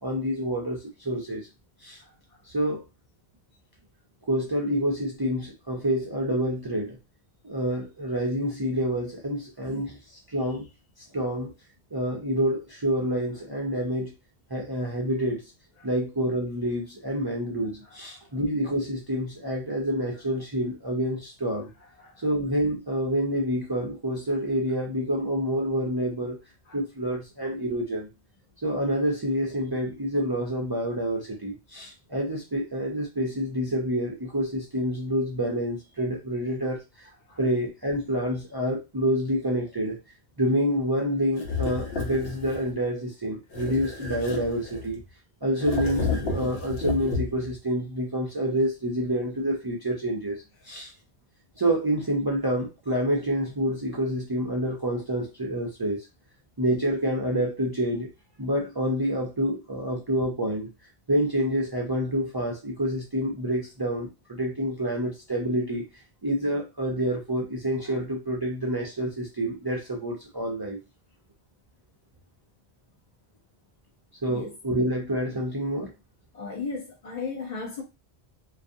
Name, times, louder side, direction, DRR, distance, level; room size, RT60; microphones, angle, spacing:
voice 1, 0.0-1.5 1.8-2.0 2.5-2.8 4.3-7.0 7.4-10.0 10.3-10.7 11.1-11.5 11.9-14.1 14.5-15.4 15.8-21.7 22.2-26.4 26.7-28.1 28.6-37.1 37.4-40.0 40.4-45.0 45.4-50.9 51.6-56.1 56.6-58.1 58.4-60.7 61.1-65.8 66.2-70.8 74.2-75.9, equal, 40° right, 0.3 m, -28 dB
sound 1, 41.4-42.7 43.5-45.0 45.5-47.5, left 4 dB, 70° left, 1.0 m, -31 dB
voice 2, 76.3-77.8, left 4 dB, 45° left, 0.7 m, -36 dB
2.4 x 2.3 x 2.6 m
omnidirectional pair, 1.1 m